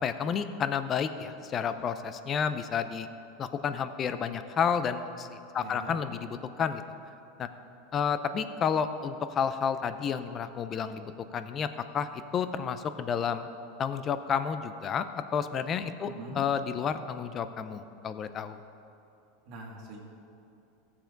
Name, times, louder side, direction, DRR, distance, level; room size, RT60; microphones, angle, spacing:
voice 1, 0.0-3.1 3.4-6.8 7.4-7.5 7.9-11.7 11.9-13.5 13.8-15.1 15.3-18.6, left 7 dB, 30° left, 11 dB, 0.5 m, -31 dB
voice 2, 5.6-6.0 16.1-16.4 19.5-20.0, right 1 dB, 55° right, -2 dB, 2.0 m, -42 dB
16.0 x 7.1 x 3.9 m, 2.8 s
supercardioid pair, 130°, 0 cm